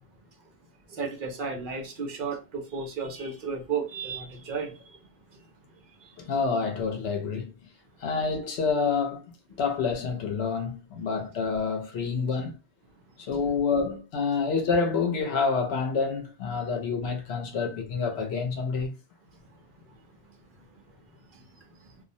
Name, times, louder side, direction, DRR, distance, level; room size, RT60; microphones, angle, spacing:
voice 1, 0.9-4.7, right 5 dB, 55° right, 0.7 m, -33 dB
voice 2, 6.2-7.5 8.0-9.2 9.6-12.5 13.3-18.9, left 5 dB, 75° left, 0.9 m, -28 dB
2.4 x 2.0 x 2.6 m
omnidirectional pair, 1.1 m